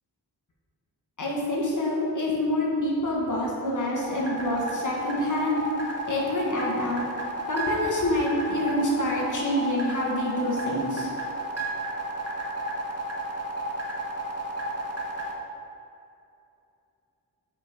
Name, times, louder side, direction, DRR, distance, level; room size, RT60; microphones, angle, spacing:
voice 1, 1.2-5.7 6.1-7.0 7.5-11.1, left 1 dB, 45° left, -3 dB, 1.2 m, -27 dB
sound 1, 4.0-15.3, right 1 dB, 40° right, 1.0 m, -32 dB
5.6 x 3.8 x 4.9 m, 2.7 s
wide cardioid pair, 100°, 41 cm